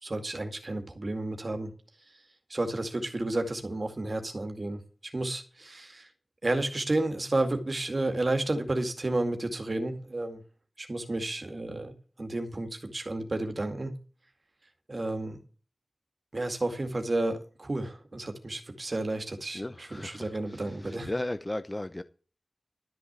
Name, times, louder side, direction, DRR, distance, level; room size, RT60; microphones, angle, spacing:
voice 1, 0.0-1.7 2.5-4.8 5.1-6.1 6.4-10.4 10.8-11.9 12.2-14.0 14.9-15.4 16.3-21.1, right 2 dB, 50° right, 2.2 m, -31 dB
voice 2, 19.5-22.0, left 1 dB, 25° left, 0.7 m, -36 dB
12.5 x 6.2 x 8.2 m
wide cardioid pair, 70°, 0 cm